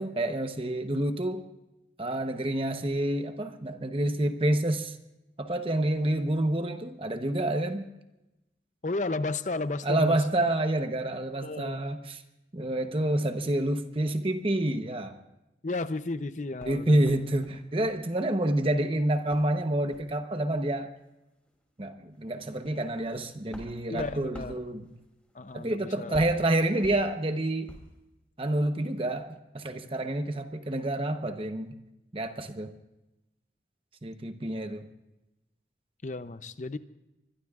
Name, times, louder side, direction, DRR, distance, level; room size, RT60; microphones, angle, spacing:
voice 1, 0.0-1.4 2.0-4.9 5.4-7.9 9.8-12.2 12.5-15.2 16.7-20.9 21.8-24.8 25.5-27.7 28.4-31.7 32.1-32.7 34.0-34.9, right 1 dB, 30° right, 7 dB, 0.9 m, -28 dB
voice 2, 8.8-10.2 11.4-11.8 15.6-17.0 23.9-24.5 25.3-26.2 36.0-36.8, left 3 dB, 45° left, 12 dB, 0.6 m, -33 dB
sound 1, 16.6-18.0 18.3-18.8 19.3-19.5 19.9-20.1 21.0-21.1 21.5-21.6 22.1-28.0, equal, 5° left, 2.9 m, -48 dB
25.0 x 21.5 x 2.5 m, 0.95 s
head